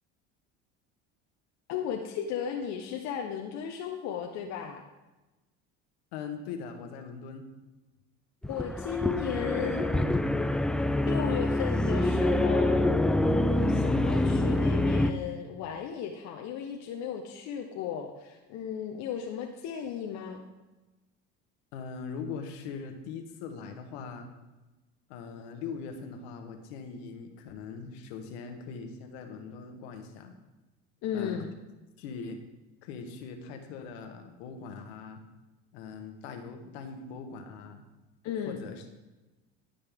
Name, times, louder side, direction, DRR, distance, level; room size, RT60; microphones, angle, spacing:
voice 1, 1.7-4.8 8.5-10.1 11.0-12.9 13.3-20.4 31.0-31.5 38.2-38.6, left 8 dB, 65° left, 3 dB, 1.0 m, -35 dB
voice 2, 6.1-7.5 9.0-10.0 11.0-11.4 21.7-24.3 25.1-30.3 31.1-31.4 32.0-32.4 32.8-35.2 35.7-37.8 38.4-38.9, left 5 dB, 85° left, 6 dB, 1.4 m, -41 dB
sound 1, 8.4-15.1, left 1 dB, 5° left, 0.3 m, -26 dB
16.0 x 5.5 x 3.6 m, 1.1 s
supercardioid pair, 100°, 31 cm